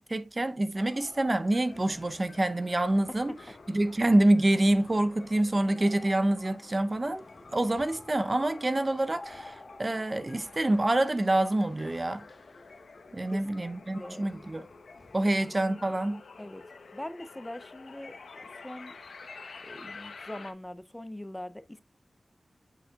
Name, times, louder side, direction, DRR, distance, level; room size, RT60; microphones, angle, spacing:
voice 1, 0.1-3.3 3.7-7.2 7.5-12.3 13.1-14.7 15.1-16.2, right 1 dB, 35° right, 0.7 m, -26 dB
sound 1, 0.7-15.6, left 2 dB, 40° left, 2.1 m, -52 dB
sound 2, 1.4-20.5, left 4 dB, 85° left, 0.9 m, -50 dB
voice 2, 14.0-14.3 15.2-15.3 16.4-16.6 16.9-18.2 18.5-19.0 19.6-21.8, left 1 dB, 15° left, 0.5 m, -42 dB
7.9 x 6.1 x 2.3 m
cardioid pair, 55°, 0 cm